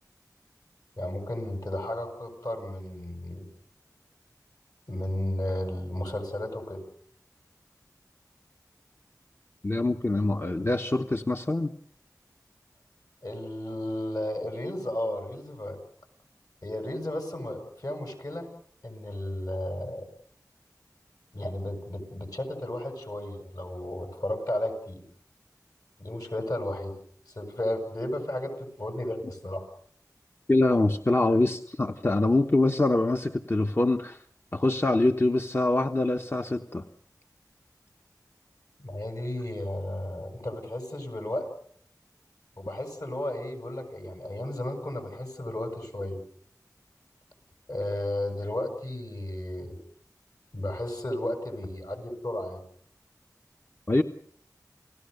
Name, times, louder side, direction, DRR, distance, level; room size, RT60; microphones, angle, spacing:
voice 1, 1.0-3.5 4.9-6.8 13.2-15.8 16.6-18.5 18.8-20.1 21.3-25.0 26.0-27.0 27.3-29.7 38.8-41.5 42.6-46.2 47.7-49.8 50.5-52.6, left 1 dB, 60° left, 5 dB, 7.5 m, -33 dB
voice 2, 9.6-11.7 30.5-34.2 34.5-36.8 53.9-54.0, left 2 dB, 35° left, 5 dB, 1.1 m, -24 dB
29.5 x 17.5 x 6.8 m, 0.63 s
wide cardioid pair, 45°, 7 cm